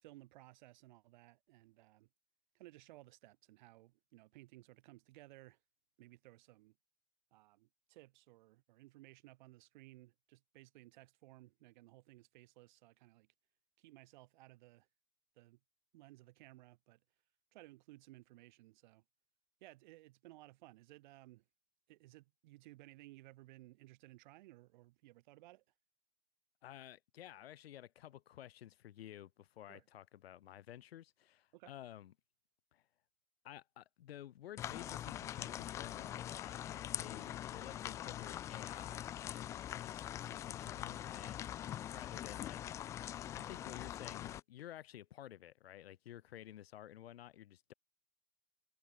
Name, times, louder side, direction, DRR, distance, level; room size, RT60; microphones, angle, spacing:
voice 1, 0.0-2.1 2.5-5.6 6.0-6.8 7.3-13.3 13.8-14.9 15.3-15.6 15.9-17.0 17.5-19.0 19.6-21.4 21.9-25.6 29.7-29.9 31.5-31.7, right 18 dB, 50° right, 3.3 m, -59 dB
voice 2, 26.6-32.1 32.7-32.8 33.4-41.5 41.9-42.6 43.3-47.7, left 12 dB, 75° left, 1.5 m, -53 dB
sound 1, 34.6-44.4, left 11 dB, 10° left, 0.4 m, -43 dB
supercardioid pair, 160°, 31 cm